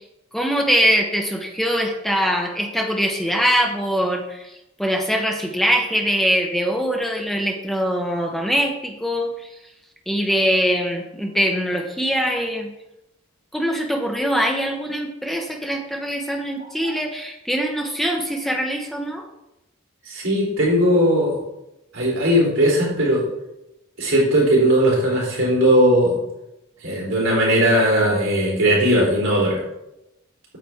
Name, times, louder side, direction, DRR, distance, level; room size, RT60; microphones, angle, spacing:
voice 1, 0.3-4.5 4.8-9.5 10.1-12.7 13.5-19.2, equal, ahead, 2 dB, 0.8 m, -22 dB
voice 2, 20.0-21.4 21.9-23.2 24.0-26.2 26.8-29.6, equal, 75° right, -4 dB, 3.3 m, -18 dB
8.8 x 7.5 x 3.5 m, 0.90 s
head